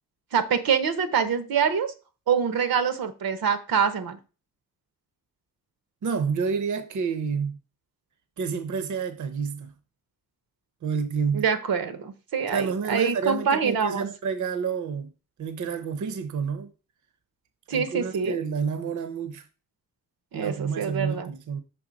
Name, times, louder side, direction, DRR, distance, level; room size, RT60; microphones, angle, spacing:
voice 1, 0.3-1.9 2.3-4.2 11.3-14.1 17.7-18.4 20.3-21.3, right 7 dB, 85° right, 0.9 m, -25 dB
voice 2, 6.0-7.6 8.4-9.7 10.8-11.4 12.5-15.1 15.4-16.7 17.7-19.5 20.3-21.6, right 6 dB, 55° right, 0.7 m, -29 dB
6.2 x 3.4 x 5.1 m
wide cardioid pair, 135°, 35 cm